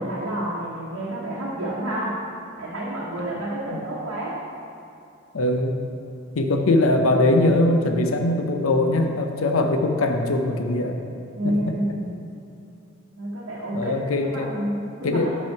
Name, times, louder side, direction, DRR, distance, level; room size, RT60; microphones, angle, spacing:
voice 1, 0.0-2.2 2.6-4.4 11.3-12.3 13.2-15.3, right 1 dB, 75° right, -7 dB, 1.0 m, -29 dB
voice 2, 5.3-5.8 6.4-11.0 11.7-11.8 13.7-14.5 14.8-15.3, left 2 dB, 90° left, 5 dB, 0.6 m, -21 dB
5.5 x 5.3 x 4.5 m, 2.6 s
head